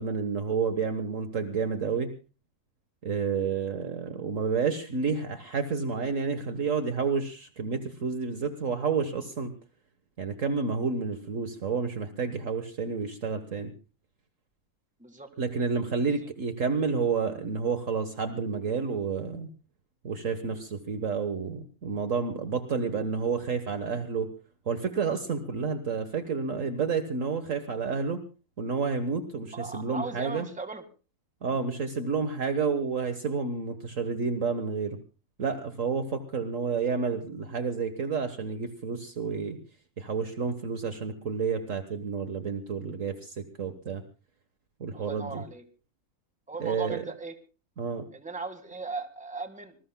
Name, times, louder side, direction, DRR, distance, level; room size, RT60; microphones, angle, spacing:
voice 1, 0.0-2.1 3.0-9.5 10.2-13.7 15.4-19.5 20.0-24.3 24.7-28.2 28.6-30.5 31.4-35.0 35.4-39.6 40.0-44.0 44.8-45.4 46.6-47.0 47.8-48.0, right 5 dB, 60° right, 8 dB, 1.7 m, -30 dB
voice 2, 29.5-30.8 31.6-31.7 44.9-45.6 46.5-47.3 48.1-49.8, right 3 dB, 5° right, 8 dB, 1.7 m, -38 dB
26.0 x 20.5 x 2.2 m, 0.34 s
omnidirectional pair, 1.6 m